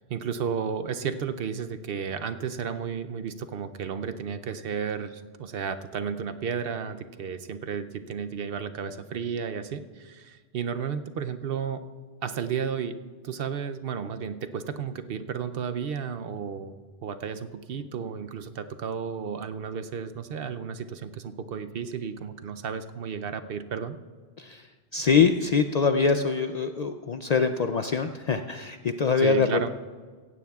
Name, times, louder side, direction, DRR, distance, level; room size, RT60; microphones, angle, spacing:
voice 1, 0.1-11.9 12.2-13.0 13.2-16.7 17.0-24.0 29.2-29.7, right 7 dB, 65° right, 9 dB, 0.8 m, -33 dB
voice 2, 24.4-24.7 24.9-29.7, left 5 dB, 55° left, 8 dB, 0.4 m, -24 dB
16.5 x 16.0 x 2.3 m, 1.5 s
omnidirectional pair, 1.1 m